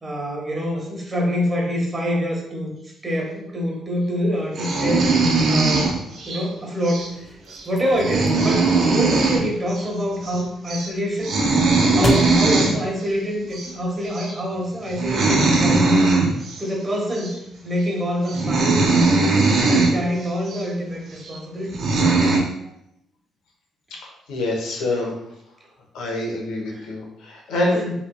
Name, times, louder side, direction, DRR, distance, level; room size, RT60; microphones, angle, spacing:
voice 1, 0.0-2.8 3.0-5.1 5.5-6.0 6.3-7.3 7.6-11.4 11.9-16.0 16.6-19.3 19.7-21.7 26.7-26.9 27.7-27.9, equal, 30° right, 0 dB, 1.2 m, -26 dB
sound 1, 4.5-6.4 6.8-7.1 7.5-7.6 7.9-9.4 9.7-9.8 10.1-10.4 10.7-10.9 11.2-12.7 13.5-13.7 14.1-14.4 14.9-16.6 17.1-17.3 17.9-18.0 18.3-19.9 20.5-20.6 21.3-21.4 21.7-22.4, right 3 dB, 65° right, 1.1 m, -19 dB
sound 2, 7.0-14.1, left 1 dB, 25° left, 0.7 m, -34 dB
voice 2, 23.9-25.1 25.9-27.8, left 1 dB, 90° left, 0 dB, 1.1 m, -26 dB
5.6 x 3.4 x 2.3 m, 0.79 s
cardioid pair, 90°, 0 cm